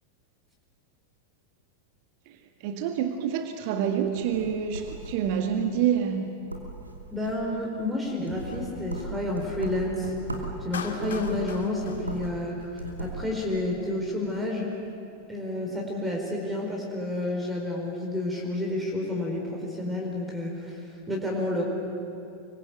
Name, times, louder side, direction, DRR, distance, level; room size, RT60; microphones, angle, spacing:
voice 1, 2.3-6.4, right 8 dB, 45° right, 6 dB, 1.6 m, -27 dB
sound 1, 4.0-5.5 5.9-6.2 6.5-7.5 8.0-10.6 11.0-12.4 12.6-13.2, right 2 dB, 80° right, 2.8 m, -37 dB
voice 2, 7.1-10.1 10.6-14.7 15.3-21.6, left 1 dB, 10° right, -1 dB, 4.6 m, -30 dB
Clapping, 10.7-13.0, left 6 dB, 65° left, 1.9 m, -40 dB
25.5 x 23.5 x 8.3 m, 2.6 s
figure-of-eight pair, 90°, 0 cm